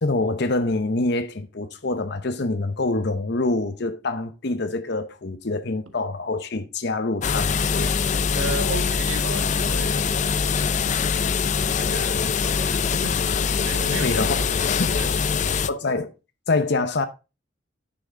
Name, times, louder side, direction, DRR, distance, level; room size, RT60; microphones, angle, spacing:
voice 1, 0.0-8.0 14.0-14.4 14.8-15.0 15.7-16.1 16.5-17.0, left 2 dB, 55° left, 0.8 m, -25 dB
sound 1, 7.2-15.7, left 6 dB, 35° left, 0.4 m, -23 dB
voice 2, 8.3-14.5 14.9-15.6, right 3 dB, 85° right, 1.5 m, -36 dB
9.6 x 6.2 x 3.7 m
head